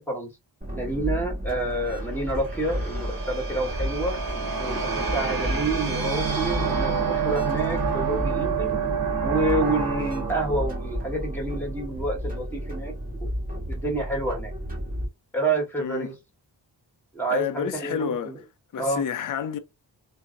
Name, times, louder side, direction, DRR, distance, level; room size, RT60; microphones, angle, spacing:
sound 1, 0.6-15.1, equal, 20° right, 1.3 m, -32 dB
voice 1, 0.7-4.2 4.6-8.7 9.2-13.3 13.7-14.5 15.3-16.1 17.1-18.4 18.8-19.0, right 2 dB, 5° left, 1.3 m, -28 dB
sound 2, 1.7-12.0, right 6 dB, 50° right, 0.7 m, -29 dB
voice 2, 15.8-16.1 17.3-18.4 18.7-19.6, left 7 dB, 45° left, 0.4 m, -29 dB
2.7 x 2.0 x 2.5 m
wide cardioid pair, 55°, 45 cm